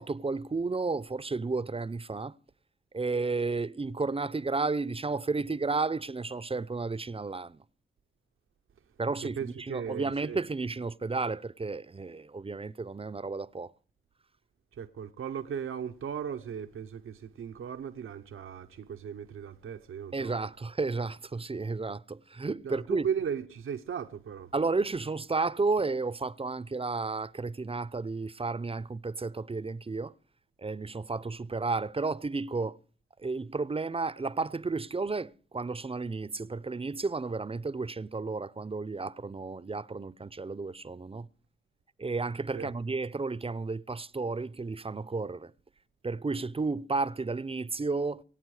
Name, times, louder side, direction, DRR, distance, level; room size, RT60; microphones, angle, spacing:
voice 1, 0.0-2.4 2.9-7.6 9.0-13.7 20.1-23.1 24.5-30.1 30.6-32.8 33.2-41.3 42.0-45.5 46.0-48.2, right 3 dB, 25° right, 0.7 m, -32 dB
voice 2, 9.4-10.4 14.7-20.3 22.6-24.5 42.5-42.7, right 8 dB, 80° right, 0.8 m, -36 dB
25.0 x 8.8 x 4.9 m
cardioid pair, 45°, 21 cm